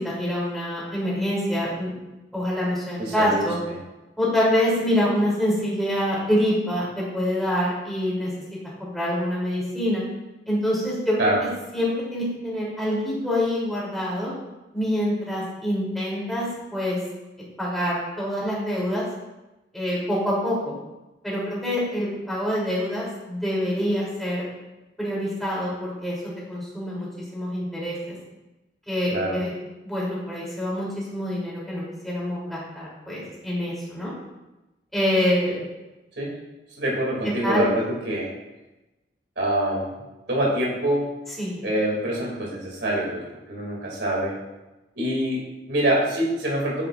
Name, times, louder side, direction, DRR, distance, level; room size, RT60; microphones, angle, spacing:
voice 1, 0.0-1.9 2.3-3.6 4.2-8.3 8.8-10.0 10.5-11.3 11.7-14.3 14.7-16.5 16.7-17.0 17.6-19.0 19.7-20.7 21.2-24.5 25.0-26.1 26.5-27.1 27.3-28.2 28.9-29.5 29.8-34.1 34.9-35.6 37.4-37.7 41.4-41.6, equal, ahead, -7 dB, 2.9 m, -25 dB
voice 2, 3.0-3.8 11.2-11.4 29.1-29.4 36.2-36.3 36.8-38.3 39.4-39.9 40.3-41.1 41.6-43.2 43.5-44.4 45.0-46.9, right 1 dB, 70° right, -3 dB, 2.4 m, -25 dB
8.8 x 8.8 x 2.4 m, 1.0 s
head